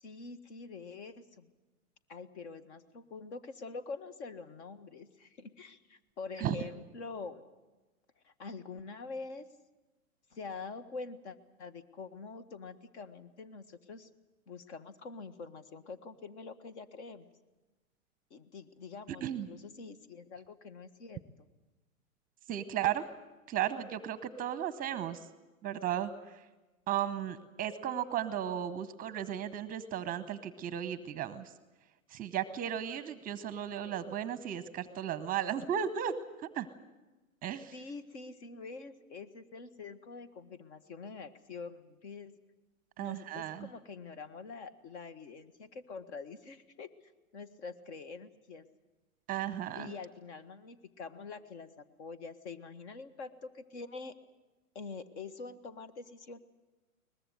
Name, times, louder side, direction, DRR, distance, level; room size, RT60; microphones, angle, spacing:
voice 1, 0.0-1.5 2.1-7.4 8.2-9.4 10.3-14.1 14.5-17.3 18.3-21.5 37.7-42.3 43.0-46.9 47.3-48.6 49.7-54.1 54.7-56.4, left 4 dB, 50° left, 12 dB, 1.7 m, -45 dB
voice 2, 22.5-23.0 23.5-25.3 25.6-26.4 26.9-31.5 32.1-36.1 36.5-36.7 37.4-37.7 43.0-43.7 49.3-49.9, right 10 dB, 20° right, 14 dB, 0.9 m, -35 dB
22.5 x 20.0 x 7.9 m, 1.1 s
hypercardioid pair, 115°, 42 cm